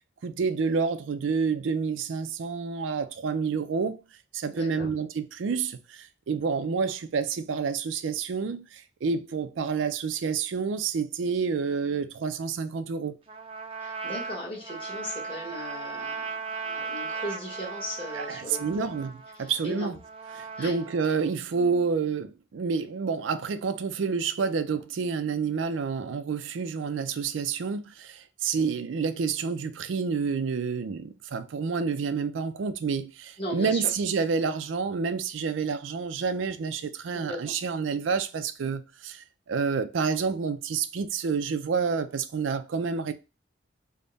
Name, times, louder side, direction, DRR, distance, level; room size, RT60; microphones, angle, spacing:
voice 1, 0.2-4.0 4.3-13.2 18.1-19.1 19.4-20.0 20.3-43.1, right 5 dB, 85° right, 0.4 m, -29 dB
voice 2, 4.5-4.9 13.8-16.4 16.6-18.9 19.4-20.0 20.6-20.7 33.4-33.9 37.1-37.5, equal, 30° left, 1.2 m, -37 dB
Trumpet, 13.3-21.3, right 5 dB, 30° right, 0.4 m, -37 dB
3.5 x 2.1 x 3.9 m
head